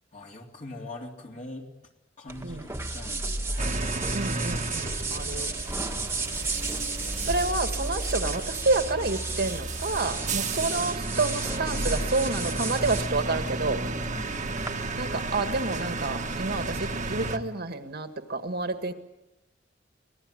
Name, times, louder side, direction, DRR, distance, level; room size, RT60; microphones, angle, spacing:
voice 1, 0.1-1.7 2.2-3.7 6.3-7.4 10.4-10.8 14.0-14.5, left 1 dB, 40° left, 0 dB, 3.5 m, -43 dB
sound 1, 2.3-14.7, right 3 dB, 15° right, 1.6 m, -34 dB
sound 2, 3.6-17.4, right 2 dB, 40° right, 1.5 m, -33 dB
voice 2, 4.1-5.5 7.2-13.8 15.0-18.9, right 3 dB, 55° right, 7 dB, 1.8 m, -29 dB
25.0 x 19.5 x 8.8 m, 0.96 s
head